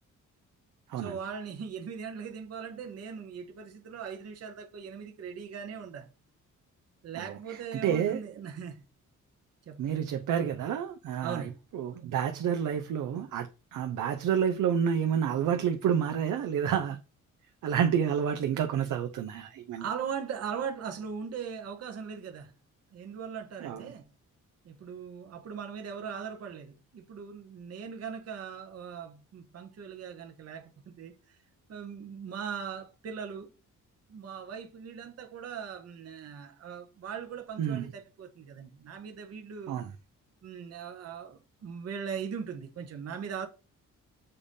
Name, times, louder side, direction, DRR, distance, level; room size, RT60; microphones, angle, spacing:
voice 1, 1.0-6.1 7.0-8.8 9.7-9.9 11.2-11.6 19.8-22.5 22.9-24.1 24.6-31.4 31.7-33.5 34.1-39.7 40.4-43.5, right 7 dB, 50° right, 1.0 m, -39 dB
voice 2, 7.1-8.2 9.8-17.0 17.6-19.9 23.6-23.9 37.6-37.9 39.7-39.9, right 8 dB, 75° right, 0.7 m, -29 dB
6.8 x 2.7 x 5.2 m
cardioid pair, 110°, 32 cm